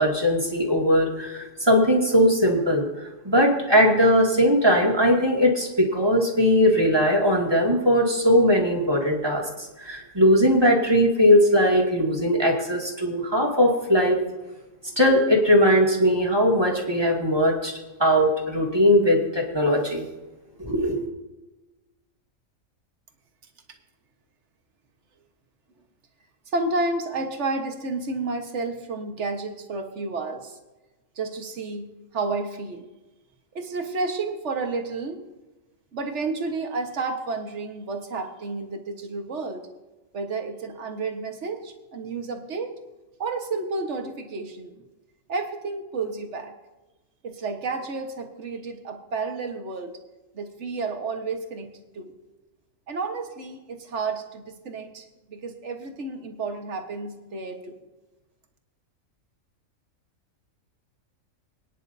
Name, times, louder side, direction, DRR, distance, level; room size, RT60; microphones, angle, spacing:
voice 1, 0.0-14.2 14.9-17.7 18.0-20.1 20.6-21.1, equal, 20° right, -1 dB, 2.2 m, -20 dB
voice 2, 26.5-30.6 31.2-32.9 33.5-35.2 35.9-39.6 40.1-42.7 43.2-44.7 45.3-46.5 47.2-49.9 50.3-52.1 52.9-57.8, right 3 dB, 60° right, 4 dB, 1.6 m, -31 dB
24.0 x 10.0 x 2.7 m, 1.1 s
omnidirectional pair, 1.4 m